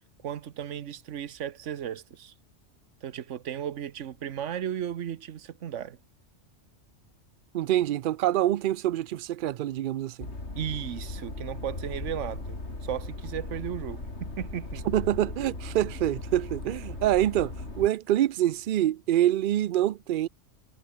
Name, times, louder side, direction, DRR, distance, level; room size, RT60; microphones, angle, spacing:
voice 1, 0.2-2.3 3.0-6.0 10.5-14.8, right 9 dB, 85° right, 1.2 m, -35 dB
voice 2, 7.5-10.3 14.9-20.3, right 13 dB, 60° right, 0.6 m, -26 dB
sound 1, 10.2-17.9, left 2 dB, 65° left, 4.3 m, -38 dB
omnidirectional pair, 1.2 m